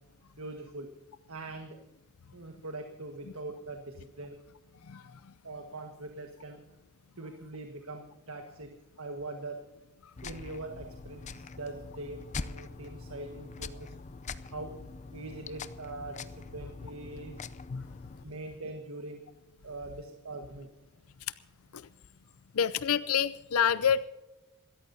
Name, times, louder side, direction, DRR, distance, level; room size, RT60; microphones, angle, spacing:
voice 1, 0.4-0.9 1.3-1.8 2.3-4.3 5.4-6.6 7.2-8.7 9.0-9.6 10.2-14.0 14.4-14.7 15.1-17.4 18.2-19.2 19.6-20.7, right 2 dB, 75° right, 4 dB, 1.6 m, -42 dB
voice 2, 4.8-5.3 10.0-10.1 17.7-17.9 21.7-21.9 22.5-24.1, left 8 dB, 80° left, 15 dB, 0.5 m, -28 dB
sound 1, 10.2-18.2, left 4 dB, 35° left, 0.5 m, -43 dB
26.5 x 13.5 x 2.8 m, 1.0 s
head